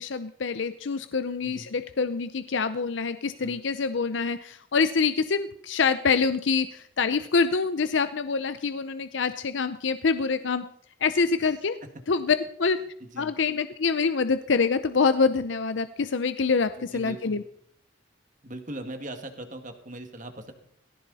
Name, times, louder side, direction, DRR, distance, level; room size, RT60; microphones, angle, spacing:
voice 1, 0.0-10.6 11.0-11.8 12.1-12.8 13.2-17.4, left 5 dB, 70° left, 11 dB, 0.6 m, -25 dB
voice 2, 16.9-17.4 18.4-20.5, right 1 dB, 40° right, 6 dB, 2.1 m, -39 dB
18.5 x 16.5 x 4.2 m, 0.70 s
head